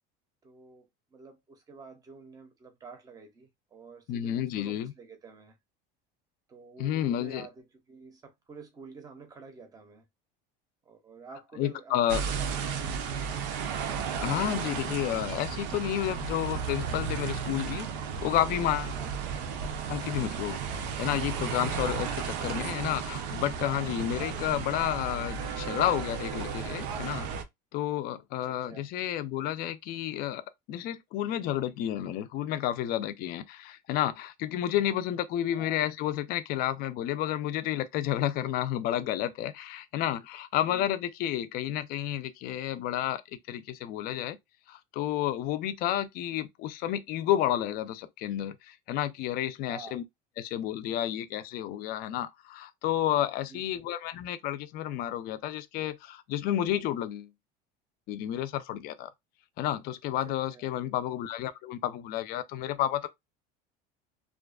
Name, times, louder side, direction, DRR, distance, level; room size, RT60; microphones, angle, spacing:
voice 1, 0.4-5.6 6.5-10.0 10.8-13.3 18.9-19.1 28.4-28.9 35.5-35.9 40.6-40.9 49.6-50.0 53.5-53.9 60.2-60.7, right 4 dB, 15° right, 0.6 m, -49 dB
voice 2, 4.1-4.9 6.8-7.4 11.6-12.2 14.2-17.9 18.2-19.0 19.9-27.3 27.7-30.4 30.7-43.2 43.5-44.4 44.7-50.0 50.4-57.3 58.1-59.1 59.6-63.1, left 12 dB, 45° left, 0.4 m, -31 dB
sound 1, 12.1-27.4, right 6 dB, 90° right, 0.5 m, -34 dB
2.4 x 2.3 x 2.3 m
cardioid pair, 150°, 21 cm